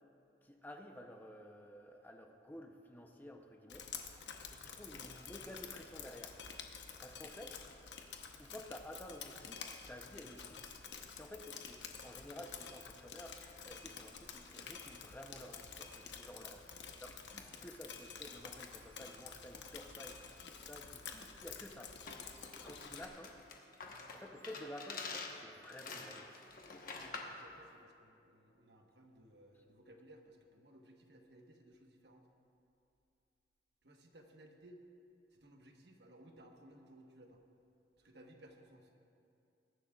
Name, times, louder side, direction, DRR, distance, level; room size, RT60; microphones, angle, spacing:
voice 1, 0.4-3.9 4.5-6.4 7.0-7.6 8.4-10.6 11.1-16.6 17.0-22.0 22.6-23.4 24.1-26.5, left 1 dB, 10° left, 3 dB, 0.7 m, -52 dB
Drip, 3.7-23.1, left 6 dB, 90° left, 1.0 m, -50 dB
voice 2, 16.7-17.4 26.8-32.3 33.8-34.8 35.3-37.4 38.0-38.9, right 1 dB, 70° right, 2 dB, 1.2 m, -60 dB
sound 1, 22.1-27.4, left 4 dB, 55° left, 1.1 m, -47 dB
21.5 x 11.0 x 2.4 m, 2.6 s
head